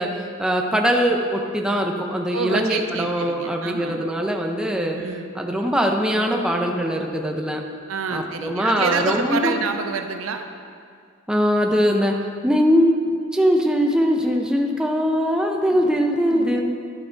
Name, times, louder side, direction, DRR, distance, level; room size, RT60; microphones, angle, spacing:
voice 1, 0.0-5.0 5.3-7.6 8.1-9.6 11.3-12.2 12.4-12.9 13.3-16.6, equal, 5° right, 1 dB, 0.5 m, -21 dB
voice 2, 2.3-4.1 5.0-5.3 7.9-10.5 15.7-15.8 16.3-16.6, right 5 dB, 70° right, 6 dB, 0.5 m, -28 dB
11.0 x 4.8 x 3.8 m, 2.2 s
head